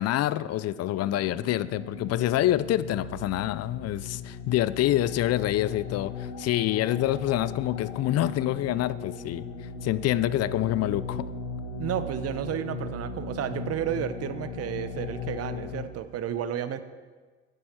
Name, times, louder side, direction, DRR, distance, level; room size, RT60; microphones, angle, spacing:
voice 1, 0.0-9.5 9.8-11.3, left 13 dB, 45° left, 17 dB, 0.4 m, -26 dB
sound 1, 0.6-15.9, left 5 dB, 85° left, 1.2 m, -37 dB
voice 2, 11.8-16.8, right 10 dB, 45° right, 12 dB, 0.7 m, -32 dB
10.0 x 7.7 x 4.3 m, 1.4 s
hypercardioid pair, 70°, 34 cm